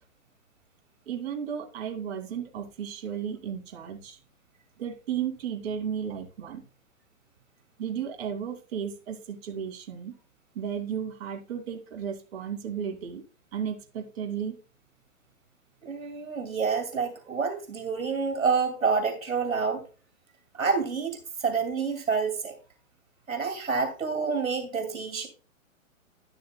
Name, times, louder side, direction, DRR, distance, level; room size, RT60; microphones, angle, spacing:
voice 1, 1.1-4.2 4.8-6.6 7.8-10.1 10.5-13.2 13.5-14.6, right 8 dB, 50° right, 2.7 m, -34 dB
voice 2, 15.8-19.8 20.5-22.6 23.3-25.3, right 5 dB, 80° right, 2.5 m, -28 dB
12.0 x 11.5 x 2.3 m
hypercardioid pair, 120°, 40 cm